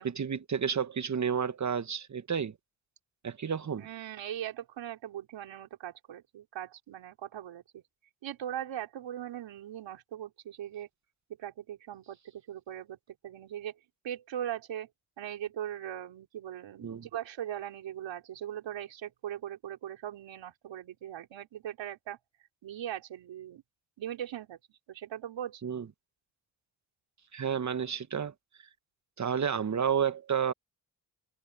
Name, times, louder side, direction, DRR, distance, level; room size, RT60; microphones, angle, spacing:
voice 1, 0.0-2.6 3.2-3.9 16.8-17.1 25.6-25.9 27.3-28.3 29.2-30.5, right 7 dB, 40° right, 1.1 m, -31 dB
voice 2, 3.8-7.8 8.2-10.9 11.4-13.8 14.0-14.9 15.2-22.2 22.6-23.6 24.0-25.6, right 11 dB, 80° right, 4.1 m, -40 dB
cardioid pair, 70°, 44 cm